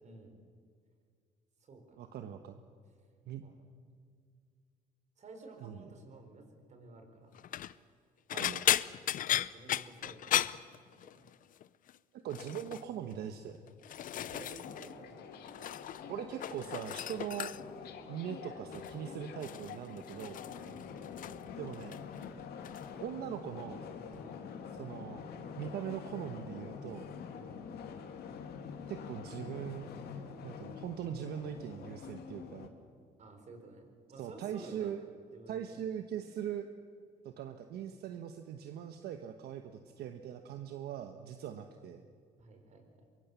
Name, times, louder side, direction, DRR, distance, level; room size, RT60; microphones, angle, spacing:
voice 1, 0.0-0.4 1.6-2.2 3.4-3.6 5.2-7.4 9.1-11.3 14.1-15.2 20.7-20.9 24.2-24.4 27.3-27.6 33.2-35.1 35.3-35.8 42.4-43.1, right 3 dB, 45° right, 4 dB, 4.5 m, -53 dB
voice 2, 2.0-2.6 3.3-3.4 5.6-5.9 8.3-8.7 12.1-13.6 16.1-17.5 18.1-20.4 21.6-22.0 23.0-23.8 24.7-25.2 25.6-27.1 28.9-29.9 30.4-32.7 34.2-35.0 35.5-36.7 37.2-42.0, right 9 dB, 70° right, 7 dB, 1.2 m, -41 dB
sound 1, 7.3-7.7 8.3-11.3 11.6-12.0 12.3-12.8 13.5-14.9 15.2-16.0 16.3-17.8 18.7-19.0 19.4-21.5 21.7-22.3 22.6-22.9 24.1-24.2, left 11 dB, 55° left, 0.6 m, -36 dB
sound 2, 14.6-32.7, left 6 dB, 70° left, 2.4 m, -46 dB
23.5 x 22.5 x 7.0 m, 2.1 s
cardioid pair, 110°, 17 cm